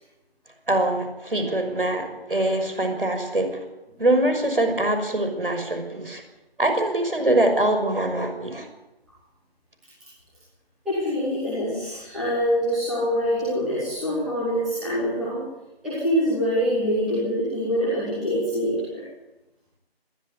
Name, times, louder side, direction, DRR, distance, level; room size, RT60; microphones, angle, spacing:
voice 1, 0.7-3.6 4.0-6.2 6.6-8.7, right 1 dB, 60° right, 6 dB, 6.0 m, -23 dB
voice 2, 10.8-15.5 15.8-19.1, equal, ahead, -13 dB, 2.0 m, -25 dB
21.0 x 14.5 x 9.8 m, 0.95 s
figure-of-eight pair, 170°, 31 cm